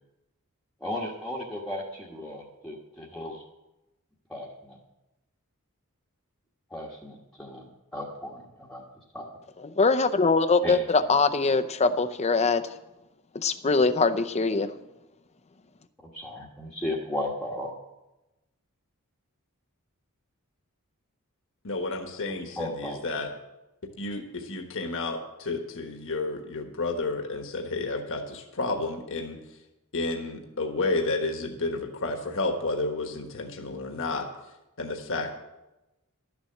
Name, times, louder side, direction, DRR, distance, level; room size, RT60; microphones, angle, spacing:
voice 1, 0.8-3.4 4.3-4.8 6.7-7.7 7.9-8.8 9.1-9.3 10.6-10.8 16.0-17.7 22.6-23.3, left 1 dB, 5° left, -4 dB, 1.3 m, -35 dB
voice 2, 9.8-12.7 13.3-14.7, left 4 dB, 30° left, 9 dB, 0.6 m, -22 dB
voice 3, 21.6-23.3 24.0-29.4 29.9-34.3 34.8-35.3, left 3 dB, 60° left, 4 dB, 1.3 m, -31 dB
12.0 x 7.1 x 7.7 m, 0.99 s
head